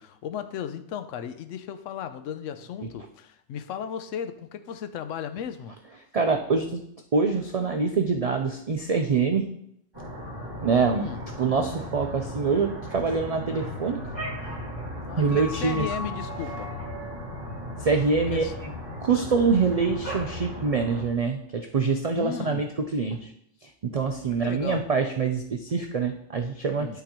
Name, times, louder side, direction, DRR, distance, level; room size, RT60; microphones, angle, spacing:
voice 1, 0.0-5.8 10.9-11.2 15.1-16.7 18.3-18.5 19.1-19.3 22.2-22.6 24.4-24.8 26.8-27.0, left 8 dB, 80° left, 10 dB, 0.9 m, -35 dB
voice 2, 6.1-6.8 7.1-9.5 10.6-11.1 11.4-14.1 15.2-15.9 17.8-18.4 19.0-23.3 23.6-27.0, right 4 dB, 70° right, 4 dB, 0.3 m, -25 dB
sound 1, 9.9-21.0, left 1 dB, 20° right, 1.8 m, -36 dB
11.5 x 3.9 x 2.9 m, 0.72 s
omnidirectional pair, 1.3 m